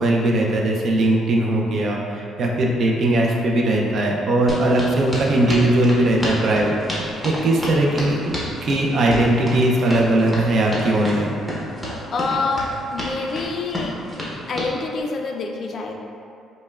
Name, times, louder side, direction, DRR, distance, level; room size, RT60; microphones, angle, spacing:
voice 1, 0.0-8.3 8.6-11.3, right 1 dB, 50° right, -1 dB, 0.5 m, -19 dB
sound 1, 4.5-14.7, equal, ahead, 0.7 m, -29 dB
voice 2, 12.1-13.9 14.5-16.0, left 3 dB, 45° left, 2 dB, 0.3 m, -26 dB
5.3 x 2.1 x 2.3 m, 2.5 s
cardioid pair, 140°, 0 cm